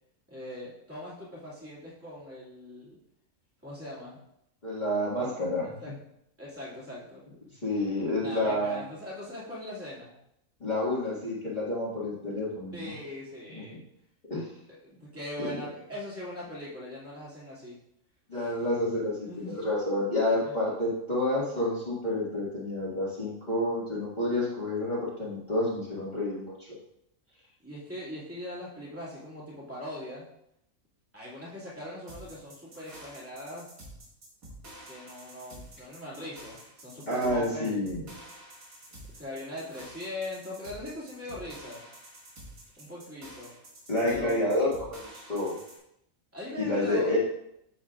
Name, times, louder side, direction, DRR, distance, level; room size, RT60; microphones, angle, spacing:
voice 1, 0.3-3.0 3.6-4.2 5.1-5.3 5.6-5.9 6.4-7.2 8.2-10.2 12.7-13.8 14.7-17.8 18.3-18.6 19.3-19.6 20.4-20.5 27.6-30.3 31.1-33.7 34.8-37.8 39.2-41.8 42.8-43.5 44.0-44.6 46.3-47.1, left 1 dB, 10° right, -7 dB, 2.3 m, -41 dB
voice 2, 4.6-5.6 7.6-8.8 10.6-12.9 13.5-13.6 14.3-14.5 15.4-15.6 18.3-26.7 37.1-38.1 43.9-44.7 45.1-45.5 46.6-47.2, left 1 dB, 30° left, -9 dB, 2.0 m, -29 dB
sound 1, 32.1-45.8, right 1 dB, 85° right, 2.4 m, -49 dB
8.7 x 7.0 x 2.4 m, 0.78 s
omnidirectional pair, 1.4 m